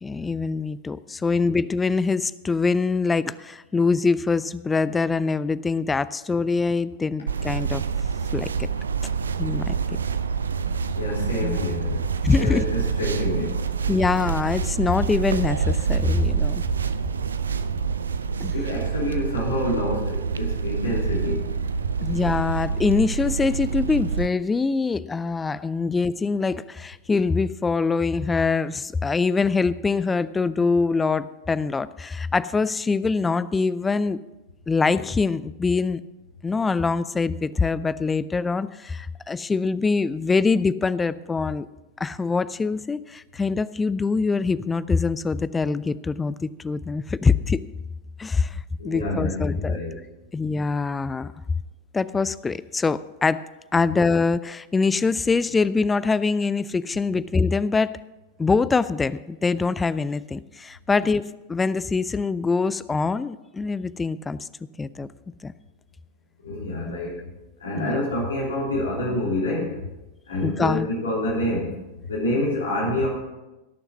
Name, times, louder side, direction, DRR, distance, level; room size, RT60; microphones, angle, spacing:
voice 1, 0.0-7.8 8.3-8.5 9.4-9.7 11.4-11.6 12.2-12.6 13.9-16.6 18.4-18.5 22.0-34.2 34.7-36.0 36.4-41.7 42.0-47.6 48.2-49.8 50.3-51.3 51.9-53.4 53.7-57.9 58.4-64.5 64.8-65.1 65.4-65.5 67.8-68.0 70.4-70.9, left 4 dB, 15° left, 17 dB, 0.4 m, -24 dB
sound 1, 7.3-24.3, right 6 dB, 70° right, 0.6 m, -27 dB
voice 2, 10.9-12.0 12.3-13.6 18.5-21.5 48.8-50.0 66.4-67.3 67.6-69.8 70.3-71.8 72.1-73.1, left 1 dB, 70° left, -4 dB, 3.5 m, -27 dB
17.5 x 7.0 x 6.0 m, 1.0 s
figure-of-eight pair, 90°, 0 cm